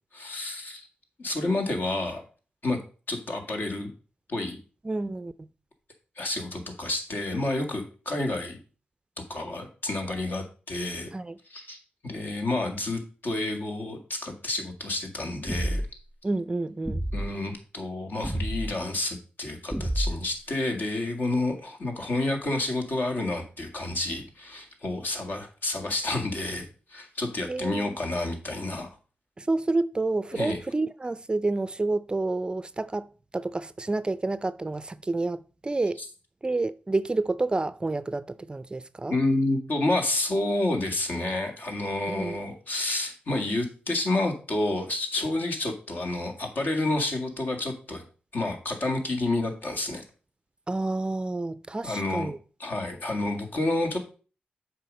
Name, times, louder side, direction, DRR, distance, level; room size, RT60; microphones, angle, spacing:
voice 1, 0.1-0.9 1.2-2.2 2.6-2.8 3.1-3.9 4.3-4.6 6.2-8.6 9.3-11.1 11.5-11.8 12.0-15.8 17.1-28.9 30.3-30.6 39.1-48.0 48.3-50.0 51.8-52.3 52.6-54.0, left 2 dB, 60° left, 2.0 m, -29 dB
voice 2, 4.8-5.5 11.1-11.4 16.2-17.1 27.5-28.0 29.4-33.1 33.3-36.0 36.4-39.2 42.1-42.4 50.7-52.4, right 2 dB, 25° right, 0.4 m, -29 dB
sound 1, 15.5-16.1 16.9-17.3 18.2-18.7 19.7-20.4, equal, 5° left, 1.1 m, -29 dB
7.5 x 4.9 x 5.1 m
cardioid pair, 65°, 4 cm